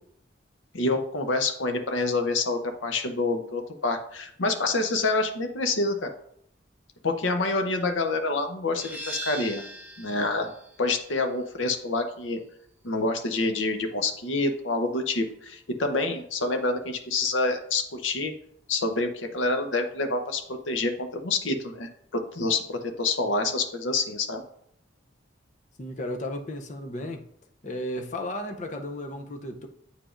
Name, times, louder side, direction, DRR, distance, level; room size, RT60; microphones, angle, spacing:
voice 1, 0.7-6.1 7.0-9.6 10.0-10.5 10.8-12.4 12.8-18.3 18.7-24.4, left 3 dB, 80° left, 0.8 m, -27 dB
sound 1, 8.8-14.2, right 1 dB, 10° right, 0.6 m, -42 dB
voice 2, 25.8-27.3 27.6-29.7, left 1 dB, 40° left, 0.6 m, -34 dB
8.3 x 5.0 x 2.5 m
head